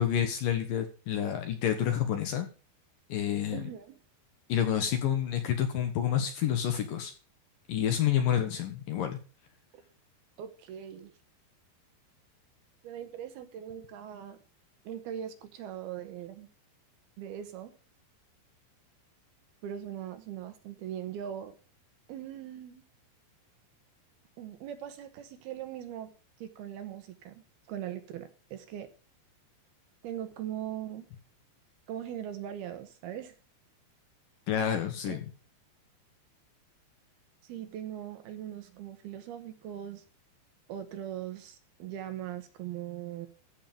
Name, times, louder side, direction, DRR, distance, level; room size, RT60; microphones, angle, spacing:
voice 1, 0.0-2.5 3.1-3.7 4.5-7.1 7.7-9.2 34.5-35.3, left 9 dB, 65° left, 6 dB, 2.5 m, -29 dB
voice 2, 3.5-4.0 10.4-11.1 12.8-14.4 14.8-16.5 17.2-17.7 19.6-21.6 22.1-22.8 24.4-26.1 26.4-27.4 27.7-28.9 30.0-31.0 31.9-33.3 35.1-35.2 37.4-40.0 40.7-43.3, right 10 dB, 70° right, 8 dB, 2.9 m, -40 dB
14.5 x 5.5 x 6.9 m, 0.37 s
omnidirectional pair, 5.0 m